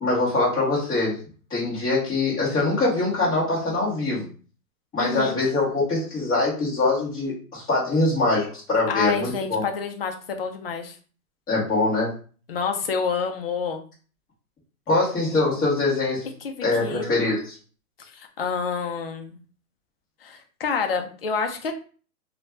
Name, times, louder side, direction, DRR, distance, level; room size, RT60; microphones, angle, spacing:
voice 1, 0.0-1.2 1.5-4.3 4.9-9.6 11.5-12.1 14.9-16.3 16.6-17.5, left 2 dB, 10° left, -9 dB, 0.8 m, -23 dB
voice 2, 5.0-5.4 8.9-11.0 12.5-13.8 16.4-16.5 16.8-17.1 18.1-19.4 20.2-21.7, left 5 dB, 45° left, 5 dB, 0.4 m, -28 dB
2.5 x 2.2 x 3.1 m, 0.40 s
hypercardioid pair, 155°, 45 cm